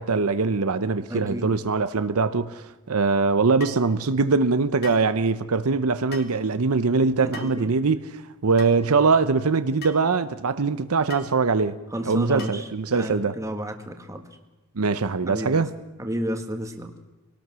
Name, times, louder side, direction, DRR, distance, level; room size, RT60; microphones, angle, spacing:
voice 1, 0.0-11.8 12.0-13.4 14.8-15.7, right 4 dB, 75° right, 0.8 m, -22 dB
voice 2, 1.1-1.5 7.2-7.7 11.9-12.6 12.9-14.2 15.3-15.6 16.0-16.9, equal, 15° right, 1.6 m, -31 dB
sound 1, 3.6-3.8 4.8-5.1 6.1-6.4 7.3-7.6 8.6-8.8 9.8-10.0 11.1-11.3 12.4-12.7, left 4 dB, 45° left, 2.0 m, -40 dB
23.5 x 18.5 x 6.2 m
head